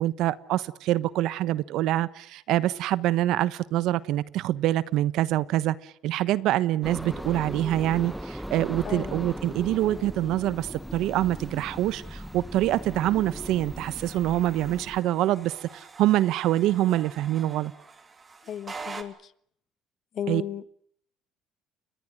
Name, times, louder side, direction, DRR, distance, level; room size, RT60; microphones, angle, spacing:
voice 1, 0.0-17.7 20.3-20.4, right 14 dB, 75° right, 17 dB, 1.1 m, -25 dB
sound 1, 6.8-15.0, equal, ahead, 1.4 m, -38 dB
voice 2, 8.8-9.2 18.4-19.3 20.1-20.7, left 9 dB, 55° left, 16 dB, 1.3 m, -35 dB
sound 2, 9.5-15.6, left 3 dB, 20° left, 2.3 m, -49 dB
sound 3, 11.6-19.0, right 4 dB, 25° right, 3.1 m, -46 dB
29.5 x 24.0 x 6.4 m, 0.65 s
cardioid pair, 115°, 0 cm